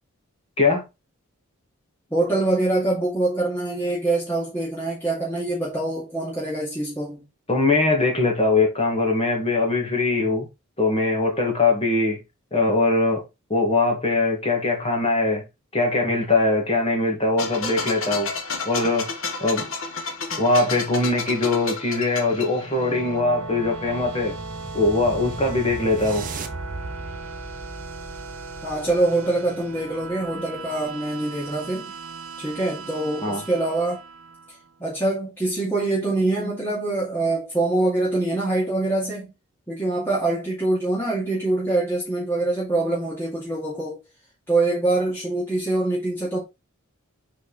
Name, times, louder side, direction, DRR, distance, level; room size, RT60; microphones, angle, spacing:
voice 1, 2.1-7.2 28.6-31.9 32.4-34.0 34.8-39.3 39.7-44.0 44.5-46.4, right 2 dB, 10° left, 2.3 m, -24 dB
voice 2, 7.5-10.5 10.8-12.2 12.5-13.2 13.5-15.4 15.7-18.3 18.7-19.1 19.4-19.6 20.4-24.3 24.7-26.3 33.2-33.4, left 2 dB, 25° left, 1.9 m, -21 dB
sound 1, 17.4-23.1, left 4 dB, 60° left, 1.2 m, -31 dB
sound 2, 22.5-34.8, right 4 dB, 80° right, 1.4 m, -38 dB
sound 3, 23.4-29.1, right 3 dB, 35° right, 0.7 m, -37 dB
5.8 x 4.2 x 4.1 m
head